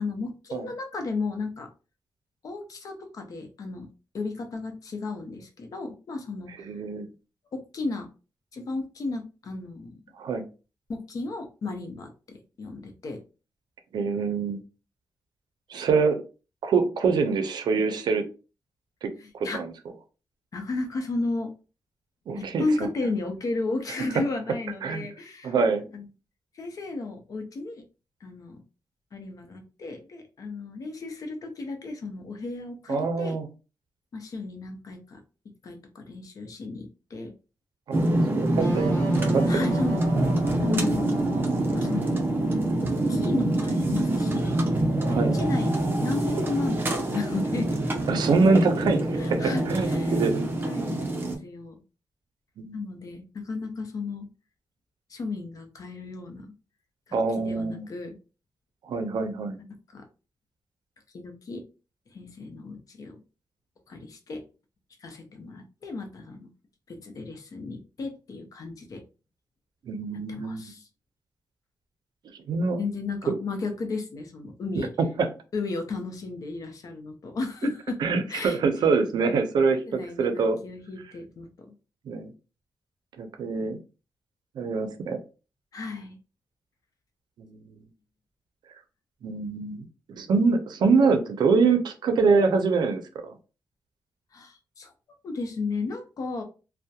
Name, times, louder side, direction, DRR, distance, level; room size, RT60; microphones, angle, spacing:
voice 1, 0.0-1.7 2.4-3.9 4.1-6.5 7.5-8.1 8.5-9.9 10.9-13.2 19.2-19.6 20.5-21.5 22.4-25.5 25.9-26.1 26.5-27.8 28.2-28.6 29.1-33.4 34.1-35.2 35.6-37.3 39.5-40.0 40.5-40.9 41.7-42.2 42.8-44.8 45.1-45.8 46.0-47.8 49.2-50.2 50.6-51.8 52.7-54.3 55.1-56.5 57.1-58.2 59.6-60.1 61.1-61.6 62.1-63.2 63.9-64.4 65.0-66.5 66.9-69.0 70.3-70.9 72.8-74.9 75.5-78.0 78.3-78.6 79.9-81.7 85.7-86.2 94.3-94.9 95.2-96.4, left 3 dB, 55° left, 5 dB, 0.6 m, -34 dB
voice 2, 6.7-7.1 10.2-10.5 13.9-14.6 15.7-16.2 16.6-18.2 19.0-19.7 22.3-22.6 24.8-25.1 25.4-25.8 32.9-33.5 37.9-38.0 38.4-39.0 39.3-39.6 40.7-41.1 45.0-45.4 48.1-50.6 52.6-52.8 57.1-57.9 58.9-59.6 69.9-70.6 72.5-72.8 73.3-73.4 75.0-75.3 78.0-80.6 82.1-82.3 83.2-83.8 84.6-85.2 87.4-87.8 89.2-93.3, right 4 dB, 85° right, 7 dB, 0.5 m, -25 dB
sound 1, 37.9-51.3, right 1 dB, 30° right, 0.5 m, -26 dB
sound 2, 38.6-44.2, right 1 dB, 35° left, 1.4 m, -33 dB
2.7 x 2.1 x 2.2 m, 0.33 s
wide cardioid pair, 150°, 7 cm